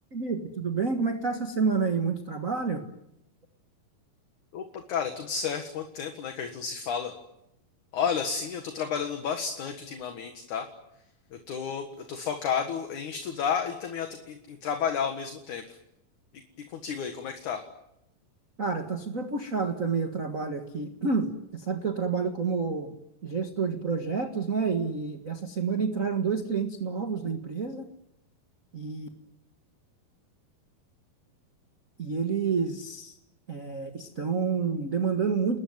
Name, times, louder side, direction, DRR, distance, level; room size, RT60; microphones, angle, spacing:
voice 1, 0.1-2.8 18.6-23.0 23.2-27.9 28.7-29.1 32.0-33.1 33.5-35.6, right 5 dB, 35° right, 5 dB, 1.4 m, -29 dB
voice 2, 4.5-7.1 7.9-10.7 11.3-15.8 16.7-17.6, left 7 dB, 65° left, 6 dB, 3.0 m, -32 dB
29.5 x 20.5 x 9.4 m, 0.87 s
omnidirectional pair, 4.0 m